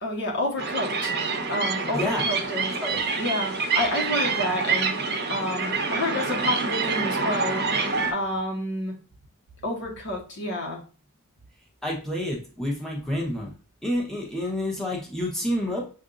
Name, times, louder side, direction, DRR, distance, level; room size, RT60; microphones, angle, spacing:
voice 1, 0.0-1.1 1.5-2.7 3.2-4.9 5.3-7.6 8.1-8.9 9.6-10.8, left 1 dB, 55° left, 0 dB, 1.1 m, -29 dB
sound 1, 0.6-8.1, right 4 dB, 50° right, 0.9 m, -27 dB
voice 2, 1.9-2.2 2.8-3.0 11.8-13.5 13.8-15.9, left 1 dB, ahead, -4 dB, 1.0 m, -28 dB
6.9 x 2.6 x 2.5 m, 0.38 s
head